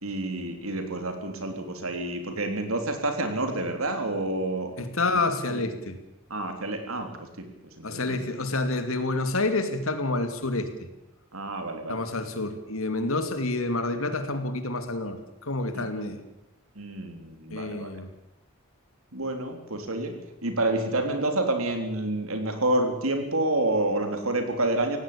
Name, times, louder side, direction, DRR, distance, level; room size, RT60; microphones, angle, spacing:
voice 1, 0.0-4.7 6.3-7.1 7.4-7.5 7.8-8.2 11.3-12.0 15.7-15.8 16.8-17.9 19.1-20.2 20.4-25.0, right 2 dB, 90° right, 6 dB, 3.6 m, -28 dB
voice 2, 4.8-6.0 7.8-10.9 11.9-16.2 17.5-18.1, left 2 dB, 85° left, 9 dB, 2.6 m, -28 dB
17.5 x 17.0 x 8.7 m, 0.90 s
head